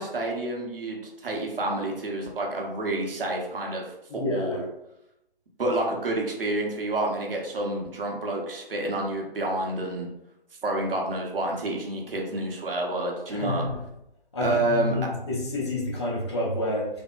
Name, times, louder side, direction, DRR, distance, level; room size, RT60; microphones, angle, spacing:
voice 1, 0.0-3.8 4.1-4.6 5.6-10.1 10.6-13.6 14.4-15.0, right 2 dB, 70° right, 0 dB, 0.8 m, -29 dB
voice 2, 4.1-4.6 13.3-13.8 14.3-16.9, left 2 dB, 30° left, -4 dB, 0.6 m, -29 dB
3.4 x 2.1 x 2.3 m, 0.85 s
figure-of-eight pair, 145°, 29 cm